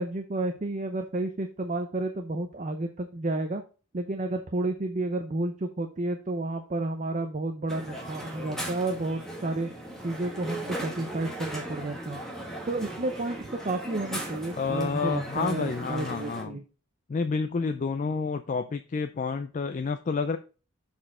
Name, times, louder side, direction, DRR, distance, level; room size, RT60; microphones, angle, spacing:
voice 1, 0.0-3.6 3.9-9.7 10.0-12.2 12.7-16.6, right 2 dB, 35° right, 5 dB, 0.6 m, -31 dB
Crowd, 7.7-16.4, right 1 dB, ahead, 1.3 m, -38 dB
voice 2, 14.5-16.6 17.1-20.4, left 4 dB, 35° left, 8 dB, 0.3 m, -29 dB
7.0 x 4.3 x 4.3 m, 0.35 s
head